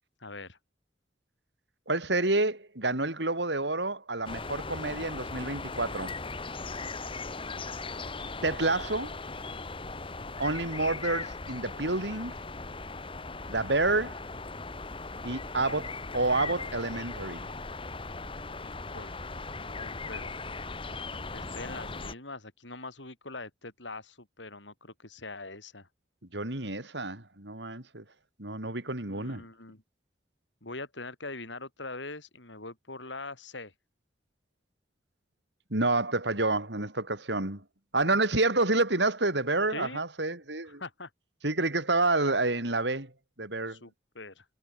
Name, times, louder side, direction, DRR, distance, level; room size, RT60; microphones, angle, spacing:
voice 1, 0.2-0.6 18.6-19.3 19.6-20.4 21.3-25.9 29.1-29.8 30.6-33.7 39.7-40.0 40.7-41.1 43.7-44.5, left 3 dB, 80° left, 6.8 m, -43 dB
voice 2, 1.9-6.1 8.4-9.2 10.4-12.4 13.5-14.2 15.2-17.5 26.3-28.0 28.4-29.4 35.7-37.6 37.9-40.8 41.4-43.1 43.4-43.8, right 2 dB, 70° right, 4.1 m, -29 dB
sound 1, 4.3-22.1, left 3 dB, 30° left, 1.7 m, -38 dB
head